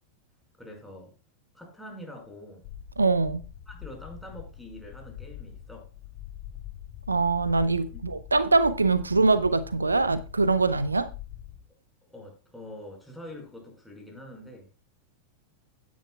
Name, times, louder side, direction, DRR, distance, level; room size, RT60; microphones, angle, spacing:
voice 1, 0.6-1.1 1.5-2.7 3.7-5.9 7.9-8.0 12.1-14.7, left 1 dB, ahead, 5.3 m, -45 dB
sound 1, 2.6-11.6, left 11 dB, 50° left, 3.5 m, -43 dB
voice 2, 3.0-3.4 7.1-11.1, right 3 dB, 80° right, 0.6 m, -23 dB
16.5 x 9.4 x 2.3 m
figure-of-eight pair, 90°, 0 cm